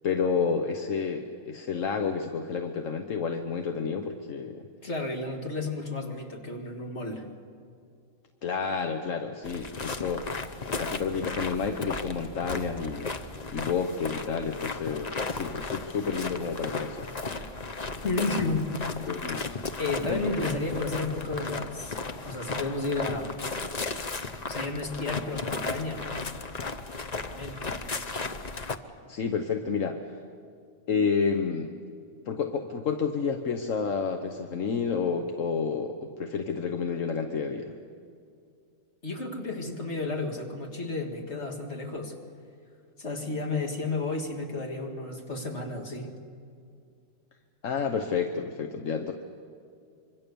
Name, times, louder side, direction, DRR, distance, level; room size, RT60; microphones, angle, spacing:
voice 1, 0.0-4.7 8.4-10.4 10.7-13.1 13.5-17.1 19.1-19.5 20.0-20.3 29.1-30.0 30.9-31.7 32.3-37.8 47.6-49.1, left 5 dB, 85° left, 5 dB, 1.5 m, -30 dB
voice 2, 4.8-7.3 18.0-18.7 19.8-22.0 22.3-23.4 24.5-26.0 27.3-27.6 39.0-42.2 43.0-46.1, left 3 dB, 60° left, 2 dB, 2.7 m, -32 dB
sound 1, 9.4-28.8, left 3 dB, 35° left, 1.0 m, -35 dB
25.5 x 24.0 x 7.0 m, 2.3 s
omnidirectional pair, 1.3 m